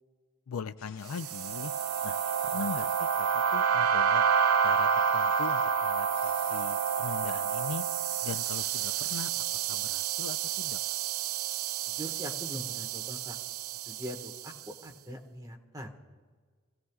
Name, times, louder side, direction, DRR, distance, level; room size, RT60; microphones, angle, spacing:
voice 1, 0.5-1.7 2.0-2.2 2.4-3.1 3.3-4.3 4.6-7.9 8.2-10.8, left 5 dB, 80° left, 12 dB, 0.4 m, -40 dB
sound 1, 0.8-9.2, left 6 dB, 65° left, 1.4 m, -54 dB
sound 2, 1.1-14.5, right 7 dB, 75° right, 0.4 m, -29 dB
voice 2, 11.9-13.4 13.9-16.0, equal, 15° right, 1 dB, 1.5 m, -42 dB
27.0 x 15.5 x 2.4 m, 1.5 s
head